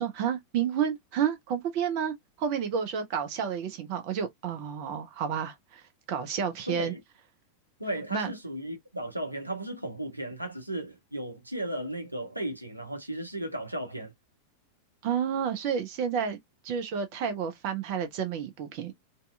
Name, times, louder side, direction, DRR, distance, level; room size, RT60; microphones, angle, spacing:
voice 1, 0.0-5.8 6.1-6.9 8.1-8.3 15.0-16.4 16.6-18.9, right 8 dB, 45° right, 0.5 m, -30 dB
voice 2, 6.7-7.0 7.8-14.1, right 1 dB, 85° right, 0.6 m, -35 dB
2.6 x 2.3 x 2.3 m
figure-of-eight pair, 90°, 0 cm